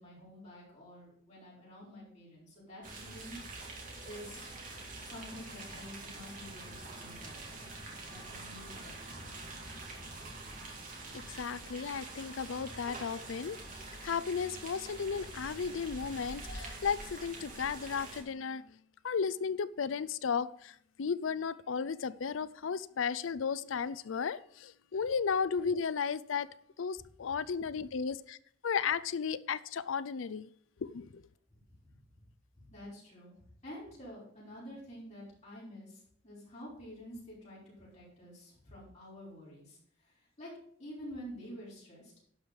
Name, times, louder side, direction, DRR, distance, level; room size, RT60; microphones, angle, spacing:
voice 1, 0.0-3.7 4.0-4.5 5.0-7.7 8.1-9.7 27.3-27.4 27.7-27.8 31.8-32.2 32.5-33.3 33.6-40.5 40.8-42.1, equal, 35° left, 5.3 m, -49 dB
sound 1, 2.8-18.2, right 2 dB, 40° right, 2.4 m, -46 dB
voice 2, 11.1-18.8 19.0-26.5 26.8-28.4 28.6-30.5 30.8-31.2, left 6 dB, 80° left, 0.5 m, -34 dB
11.5 x 5.4 x 6.4 m
head